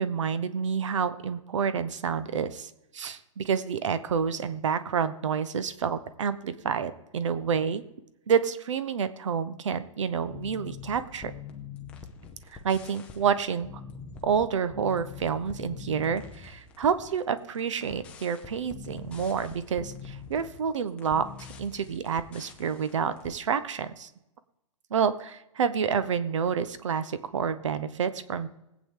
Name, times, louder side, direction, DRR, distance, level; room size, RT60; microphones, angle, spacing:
voice 1, 0.0-7.8 8.3-11.3 12.6-13.7 14.2-24.1 24.9-28.5, right 7 dB, 65° right, 13 dB, 1.0 m, -29 dB
sound 1, 10.3-23.4, left 6 dB, 5° left, 0.6 m, -44 dB
20.0 x 8.5 x 3.8 m, 0.89 s
hypercardioid pair, 175°, 17 cm